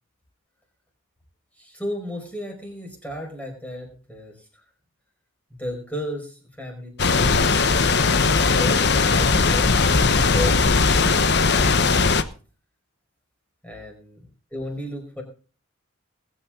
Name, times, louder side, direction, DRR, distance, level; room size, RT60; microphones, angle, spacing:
voice 1, 1.6-4.6 5.5-7.6 8.0-11.4 13.6-14.2 14.5-15.2, equal, 5° left, 1 dB, 4.9 m, -34 dB
sound 1, 7.0-12.2, left 4 dB, 50° left, 1.0 m, -19 dB
20.5 x 9.0 x 3.7 m, 0.37 s
head